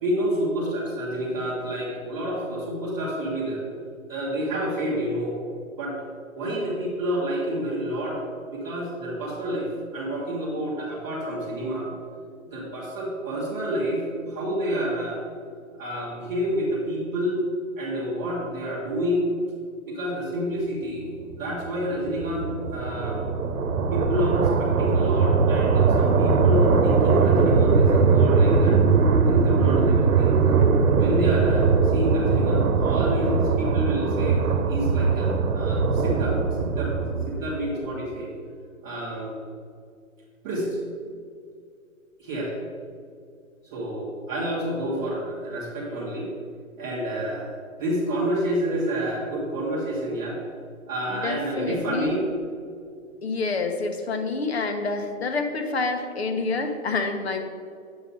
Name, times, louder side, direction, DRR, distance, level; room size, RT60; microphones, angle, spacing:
voice 1, 0.0-3.6 4.1-5.3 5.8-6.0 6.3-8.2 8.5-9.7 9.9-11.9 12.5-15.2 15.8-17.4 17.8-19.3 19.8-21.1 21.4-23.2 23.9-28.8 29.2-30.4 30.9-38.3 38.8-39.3 40.4-40.7 42.2-42.5 43.6-46.3 46.8-50.4 50.9-52.3, equal, 5° right, -13 dB, 0.7 m, -29 dB
sound 1, 21.3-37.6, right 4 dB, 80° right, 1.1 m, -21 dB
voice 2, 51.1-52.2 53.2-57.4, left 3 dB, 45° left, 6 dB, 1.1 m, -28 dB
9.1 x 8.1 x 3.9 m, 2.3 s
hypercardioid pair, 165°, 42 cm